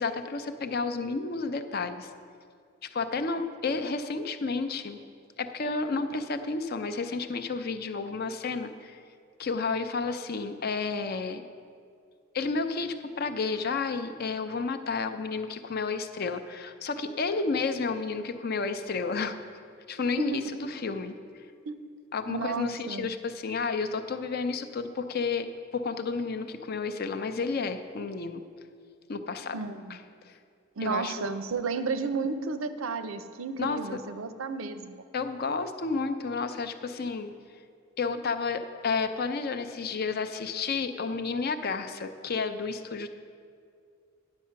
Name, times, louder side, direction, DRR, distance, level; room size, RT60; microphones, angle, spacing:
voice 1, 0.0-2.1 2.8-5.0 5.4-9.0 9.4-11.4 12.3-19.4 19.9-21.1 22.1-25.5 25.7-28.4 29.1-29.6 29.9-30.0 30.3-30.4 30.8-31.3 33.6-34.0 35.1-37.3 38.0-43.1, left 4 dB, 50° left, 9 dB, 0.5 m, -31 dB
voice 2, 20.2-20.6 20.9-21.0 21.7-21.8 22.3-23.1 29.5-30.0 30.8-35.0, right 4 dB, 90° right, 11 dB, 0.6 m, -32 dB
9.7 x 7.3 x 5.8 m, 2.2 s
head